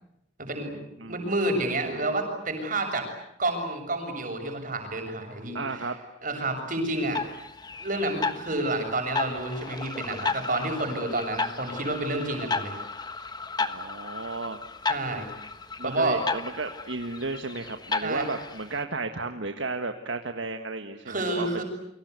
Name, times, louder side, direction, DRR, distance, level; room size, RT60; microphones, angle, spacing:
voice 1, 0.4-0.8 1.1-3.1 3.4-5.6 6.2-7.2 7.8-12.8 14.9-15.3 15.8-16.2 18.0-18.3 21.1-21.6, right 2 dB, 40° right, 4 dB, 7.3 m, -29 dB
voice 2, 1.0-1.3 5.5-6.0 13.6-14.6 15.8-21.6, right 3 dB, 65° right, 7 dB, 1.6 m, -33 dB
sound 1, 7.0-18.8, left 4 dB, 20° left, 1.4 m, -34 dB
29.0 x 24.5 x 8.3 m, 0.78 s
head